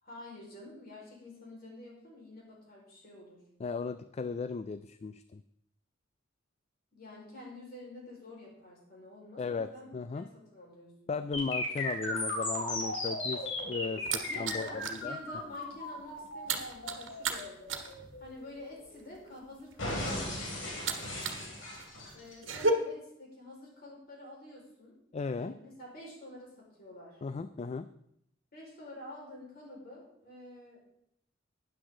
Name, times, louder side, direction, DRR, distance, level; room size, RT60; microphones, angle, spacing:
voice 1, 0.0-3.4 6.9-10.9 14.3-17.8 18.2-20.8 22.1-24.9 25.2-27.2 28.5-30.8, left 1 dB, 50° left, -3 dB, 4.7 m, -49 dB
voice 2, 3.6-5.4 9.4-10.3 11.1-15.2 25.1-25.5 27.2-27.9, left 4 dB, 35° left, 12 dB, 0.3 m, -36 dB
sound 1, 11.3-19.3 19.8-22.3, left 2 dB, 75° left, 3.1 m, -37 dB
sound 2, 13.3-15.1 15.4-15.6 15.9-21.5 21.7-22.7, right 4 dB, 75° right, 1.5 m, -35 dB
12.5 x 9.8 x 3.8 m, 0.75 s
head